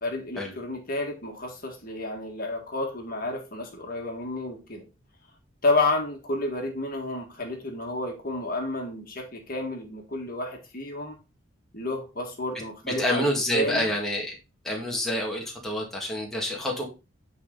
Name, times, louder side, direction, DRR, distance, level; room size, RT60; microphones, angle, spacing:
voice 1, 0.0-4.9 5.6-11.2 11.7-13.9, left 2 dB, 45° left, 1.7 m, -30 dB
voice 2, 12.9-14.3 14.7-16.8, equal, ahead, 1.7 m, -27 dB
9.9 x 4.2 x 3.9 m
head